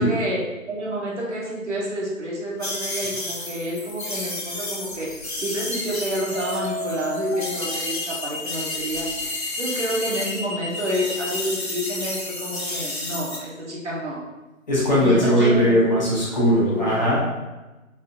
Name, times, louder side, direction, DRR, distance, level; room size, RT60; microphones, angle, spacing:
voice 1, 0.0-9.1 9.5-14.2 15.0-16.0 16.6-17.1, equal, 55° right, -4 dB, 1.2 m, -29 dB
sound 1, 2.6-10.4 10.7-13.4, left 1 dB, 50° left, 1.3 m, -32 dB
sound 2, 3.0-3.4 6.3-11.4, left 2 dB, 70° left, 0.8 m, -32 dB
voice 2, 14.7-17.2, equal, 30° left, -8 dB, 1.2 m, -19 dB
4.2 x 3.9 x 2.5 m, 1.1 s
figure-of-eight pair, 155°, 41 cm